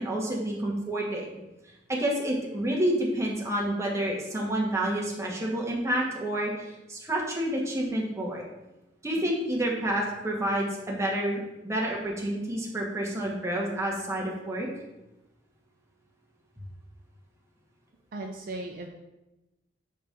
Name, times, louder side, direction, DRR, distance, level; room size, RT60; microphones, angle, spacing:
voice 1, 0.0-1.4 1.9-8.4 9.0-14.7, right 1 dB, 15° right, -2 dB, 1.2 m, -29 dB
voice 2, 18.1-18.9, right 2 dB, 50° right, 2 dB, 0.5 m, -36 dB
5.1 x 3.9 x 5.6 m, 0.99 s
head